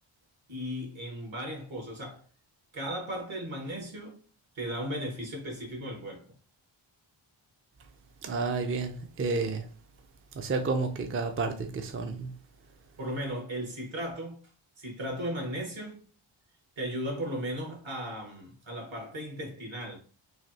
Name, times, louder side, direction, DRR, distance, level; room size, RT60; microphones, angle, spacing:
voice 1, 0.5-2.2 2.7-4.2 4.5-6.3 13.0-14.4 14.8-16.1 16.8-20.0, equal, 65° right, 1.4 m, -36 dB
voice 2, 8.2-9.7 10.3-12.3, right 3 dB, 30° right, 0.4 m, -31 dB
3.2 x 2.3 x 2.7 m
cardioid pair, 45°, 49 cm